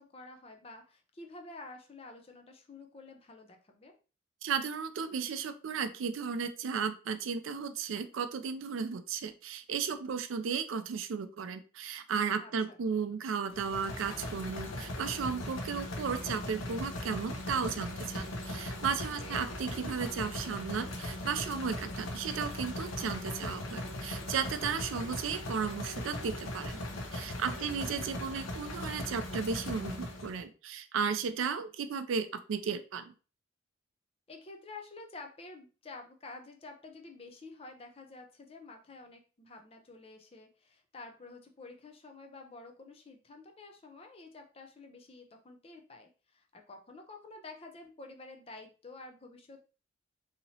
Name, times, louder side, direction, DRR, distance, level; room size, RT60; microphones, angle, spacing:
voice 1, 0.0-4.0 12.4-12.8 19.2-19.5 27.5-28.1 34.3-49.7, left 3 dB, 30° left, 4 dB, 0.4 m, -50 dB
voice 2, 4.4-26.8 27.1-33.1, right 6 dB, 75° right, 10 dB, 0.4 m, -35 dB
sound 1, 13.5-30.4, left 1 dB, 80° left, 0.7 m, -39 dB
2.9 x 2.8 x 2.7 m, 0.36 s
head